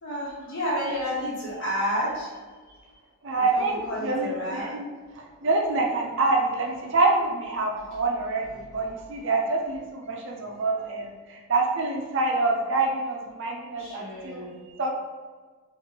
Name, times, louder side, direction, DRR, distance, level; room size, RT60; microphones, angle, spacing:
voice 1, 0.0-2.3 3.5-4.7 7.7-7.9 8.6-8.7 13.5-14.8, equal, 55° left, -7 dB, 1.4 m, -31 dB
voice 2, 3.2-4.8 5.2-14.4 14.8-14.9, right 3 dB, 55° right, 0 dB, 0.6 m, -26 dB
5.8 x 2.6 x 3.0 m, 1.4 s
head